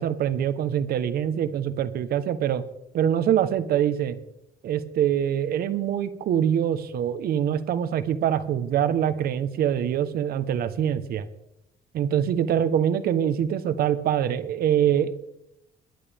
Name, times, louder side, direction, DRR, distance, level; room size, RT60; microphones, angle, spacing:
voice 1, 0.0-2.6 2.9-4.2 4.6-11.3 11.9-15.1, right 9 dB, 65° right, 11 dB, 1.2 m, -24 dB
21.5 x 11.0 x 3.6 m, 0.85 s
cardioid pair, 110°, 17 cm